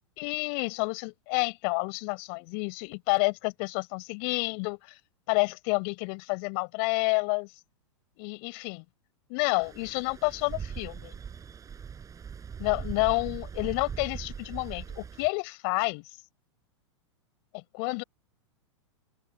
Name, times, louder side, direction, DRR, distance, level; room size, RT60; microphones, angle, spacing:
voice 1, 0.2-5.0 5.3-7.5 8.2-8.9 9.3-11.1 12.6-16.0 17.7-18.0, left 40 dB or more, 50° left, 7.1 m, -29 dB
Stream, 9.6-15.3, right 7 dB, 20° right, 7.2 m, -40 dB
open air
hypercardioid pair, 110°, 16 cm